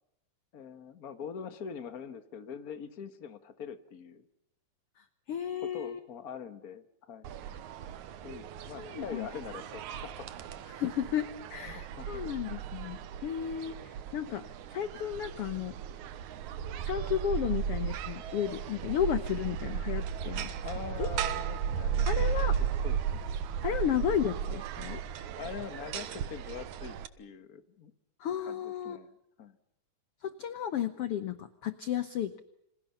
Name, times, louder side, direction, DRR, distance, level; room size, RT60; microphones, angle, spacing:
voice 1, 0.5-4.2 5.6-7.3 8.2-10.3 11.6-12.2 14.3-14.4 20.6-22.3 22.6-23.2 23.6-23.7 25.3-27.9 28.4-29.6, left 7 dB, 45° left, 11 dB, 1.2 m, -44 dB
voice 2, 5.3-6.0 8.8-9.3 10.7-14.4 14.7-15.7 16.8-20.5 21.0-21.1 22.1-22.6 23.6-25.0 28.2-29.0 30.2-32.4, left 9 dB, 60° left, 11 dB, 1.6 m, -33 dB
sound 1, 7.2-27.1, right 8 dB, 70° right, 2.5 m, -35 dB
29.0 x 27.5 x 5.7 m, 0.77 s
omnidirectional pair, 3.7 m